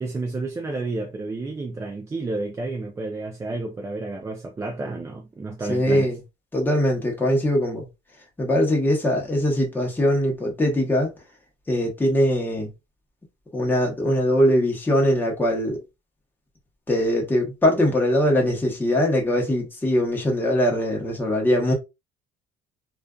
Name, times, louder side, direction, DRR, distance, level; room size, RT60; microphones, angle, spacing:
voice 1, 0.0-6.1, right 3 dB, 20° right, 0.4 m, -31 dB
voice 2, 5.7-6.2 6.5-7.9 8.4-11.1 11.7-12.7 13.5-15.8 16.9-21.7, equal, 10° left, 0.9 m, -21 dB
2.4 x 2.4 x 2.3 m
cardioid pair, 120°, 16 cm